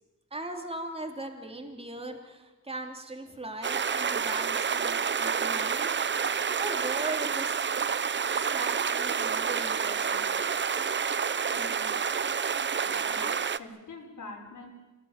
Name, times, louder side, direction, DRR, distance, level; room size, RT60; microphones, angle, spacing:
voice 1, 0.3-5.9 6.6-7.6 8.4-10.6, right 2 dB, 20° right, 3 dB, 3.3 m, -39 dB
sound 1, 3.6-13.6, right 6 dB, 35° right, 0.7 m, -29 dB
voice 2, 11.5-11.9 12.8-14.7, left 2 dB, 70° left, 2 dB, 5.9 m, -44 dB
27.5 x 18.5 x 9.1 m, 1.2 s
wide cardioid pair, 145°, 32 cm